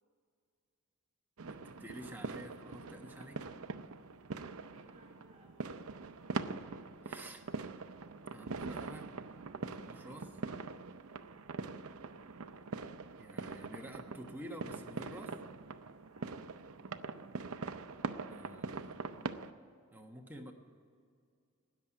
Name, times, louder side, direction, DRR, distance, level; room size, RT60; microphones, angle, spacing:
voice 1, 1.4-3.4 7.0-7.4 8.3-9.1 9.6-10.4 13.2-15.4 18.3-19.3 19.9-20.5, right 1 dB, 10° right, 1 dB, 1.3 m, -49 dB
sound 1, 1.4-19.5, right 4 dB, 70° right, 0.6 m, -43 dB
voice 2, 4.6-6.6 11.7-12.1 16.1-16.5, right 1 dB, 30° right, -3 dB, 2.9 m, -65 dB
13.0 x 9.8 x 10.0 m, 2.3 s
head